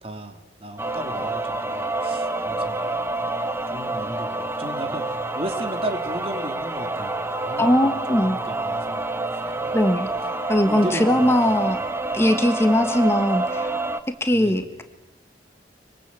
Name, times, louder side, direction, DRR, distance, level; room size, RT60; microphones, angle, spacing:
voice 1, 0.0-3.3 3.7-9.0 9.4-9.5 10.6-11.6 14.3-14.6, right 1 dB, 35° right, 6 dB, 2.9 m, -35 dB
sound 1, 0.8-14.0, right 2 dB, 15° right, 1.1 m, -28 dB
voice 2, 7.6-8.4 9.7-10.1 10.5-11.8 12.1-13.7 14.1-14.8, left 1 dB, 15° left, 7 dB, 1.6 m, -20 dB
25.5 x 25.5 x 8.5 m, 1.1 s
head